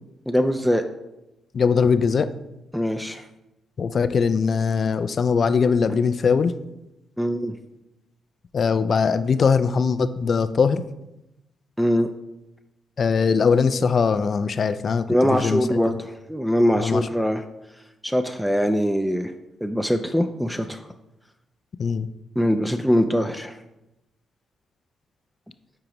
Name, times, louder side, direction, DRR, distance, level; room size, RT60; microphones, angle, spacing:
voice 1, 0.3-0.8 2.7-3.3 7.2-7.5 11.8-12.1 15.1-17.4 18.0-19.3 19.6-20.9 22.4-23.6, equal, ahead, 6 dB, 0.5 m, -22 dB
voice 2, 1.5-2.3 3.8-6.5 8.5-10.8 13.0-15.6 16.8-17.0 21.8-22.1, left 5 dB, 55° left, 13 dB, 0.4 m, -21 dB
8.8 x 4.7 x 3.0 m, 0.94 s
supercardioid pair, 50°, 0 cm